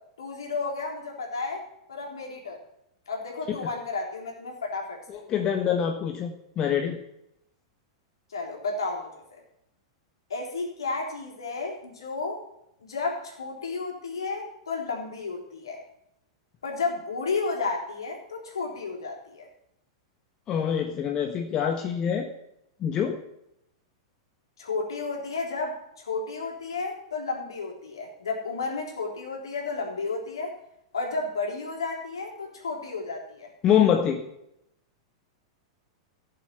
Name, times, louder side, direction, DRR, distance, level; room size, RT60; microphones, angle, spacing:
voice 1, 0.2-1.6 1.9-2.6 3.1-5.2 8.3-9.1 10.3-12.4 12.8-15.8 16.6-19.5 24.6-30.6 30.9-33.5, left 4 dB, 70° left, 0 dB, 3.6 m, -32 dB
voice 2, 5.1-7.0 20.5-22.3 22.8-23.2 33.6-34.2, left 8 dB, 30° left, 3 dB, 1.2 m, -25 dB
15.5 x 7.0 x 5.7 m, 0.80 s
figure-of-eight pair, 95°, 3 cm